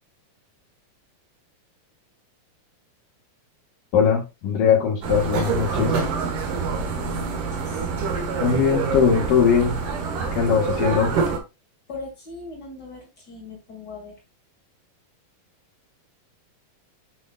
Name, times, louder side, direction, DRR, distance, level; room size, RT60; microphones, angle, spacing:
voice 1, 3.9-5.9 8.4-9.7 10.3-11.1, left 7 dB, 75° left, -1 dB, 2.8 m, -20 dB
sound 1, 5.0-11.4, right 5 dB, 70° right, 2.9 m, -26 dB
voice 2, 5.4-6.7 6.9-7.9 11.9-14.2, left 3 dB, 35° left, 0 dB, 2.2 m, -40 dB
8.4 x 6.3 x 2.3 m, 0.26 s
omnidirectional pair, 3.9 m